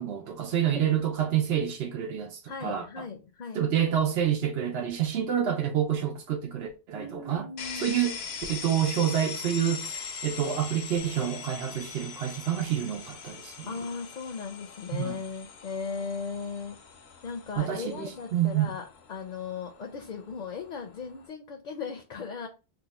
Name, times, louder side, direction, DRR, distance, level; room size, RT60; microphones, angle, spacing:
voice 1, 0.0-2.9 3.5-7.5 7.8-8.2 8.5-13.8 14.9-15.2 17.6-18.7, right 9 dB, 85° right, 0.9 m, -28 dB
voice 2, 2.5-3.6 6.9-8.0 13.6-16.8 17.2-22.5, left 5 dB, 55° left, 0.6 m, -37 dB
sound 1, 7.6-21.3, left 6 dB, 85° left, 0.9 m, -42 dB
2.8 x 2.2 x 3.9 m
omnidirectional pair, 1.0 m